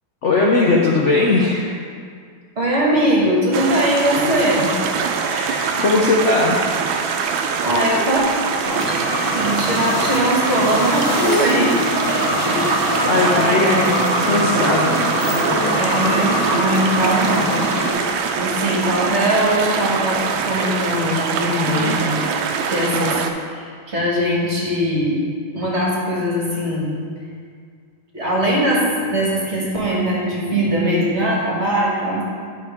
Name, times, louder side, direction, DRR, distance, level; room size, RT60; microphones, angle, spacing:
voice 1, 0.2-1.7 4.3-4.4 5.2-6.7 13.1-14.0 14.2-14.9 19.1-19.3 21.7-22.0, left 3 dB, 80° left, -3 dB, 0.6 m, -19 dB
voice 2, 2.6-4.7 7.6-8.2 9.3-11.8 12.1-14.0 15.7-17.5 18.3-22.2 22.6-23.1 23.5-25.2 25.5-27.0 28.1-32.2, equal, 35° right, -5 dB, 1.7 m, -21 dB
sound 1, 3.5-23.3, right 6 dB, 80° right, 1.3 m, -23 dB
sound 2, 8.6-17.9, left 1 dB, 30° left, 1.0 m, -23 dB
10.5 x 5.5 x 3.5 m, 2.1 s
omnidirectional pair, 2.2 m